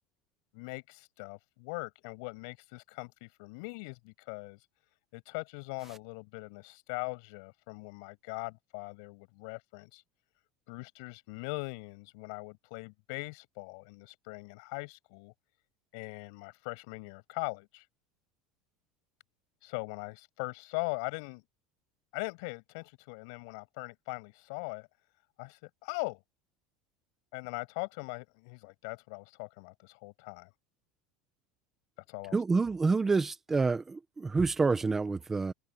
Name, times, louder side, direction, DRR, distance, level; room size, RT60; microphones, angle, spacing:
voice 1, 0.5-4.6 5.1-10.0 10.7-15.3 15.9-17.9 19.6-21.4 22.1-24.9 25.4-26.2 27.3-30.5 32.1-32.4, left 32 dB, 70° left, 7.3 m, -41 dB
voice 2, 32.3-35.5, right 4 dB, 15° right, 1.3 m, -28 dB
supercardioid pair, 140°, 2 cm